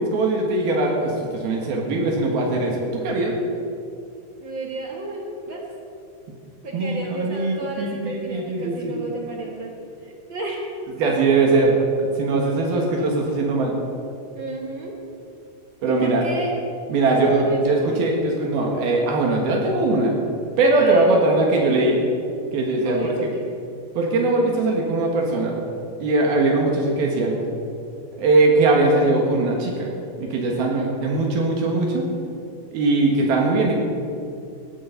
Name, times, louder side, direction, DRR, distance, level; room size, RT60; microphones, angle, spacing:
voice 1, 0.0-3.3 6.7-8.9 11.0-13.7 15.8-16.2 16.9-20.1 20.6-22.0 22.5-23.0 24.0-25.5 26.0-27.4 28.2-29.9 30.2-32.1 32.7-33.8, right 2 dB, 80° right, -1 dB, 3.5 m, -20 dB
voice 2, 4.4-5.7 6.6-9.7 10.0-10.6 14.3-15.0 15.9-16.5 17.0-18.1 20.8-21.2 22.8-23.5 30.5-30.9, right 2 dB, 50° right, -1 dB, 1.5 m, -32 dB
18.5 x 14.5 x 4.0 m, 2.6 s
omnidirectional pair, 4.3 m